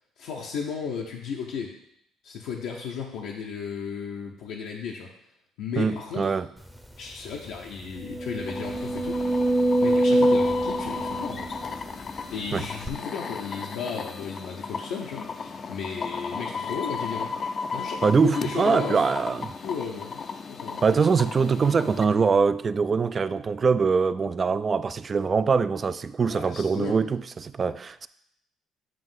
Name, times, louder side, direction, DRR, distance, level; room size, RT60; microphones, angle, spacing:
voice 1, 0.2-1.7 2.2-5.1 5.6-6.4 7.0-9.2 9.8-11.5 12.3-17.3 17.7-19.1 19.6-20.2 20.4-20.8 26.3-27.0, left 6 dB, 80° left, 0.7 m, -34 dB
voice 2, 5.8-6.5 12.5-12.7 18.0-19.5 20.8-28.1, right 5 dB, 35° right, 0.3 m, -23 dB
sound 1, 6.8-6.9 7.3-7.4 8.0-12.2 12.8-12.9, right 1 dB, 5° right, 0.7 m, -24 dB
sound 2, 8.5-22.0, left 5 dB, 45° left, 0.4 m, -35 dB
7.6 x 2.6 x 5.5 m
supercardioid pair, 75°, 0 cm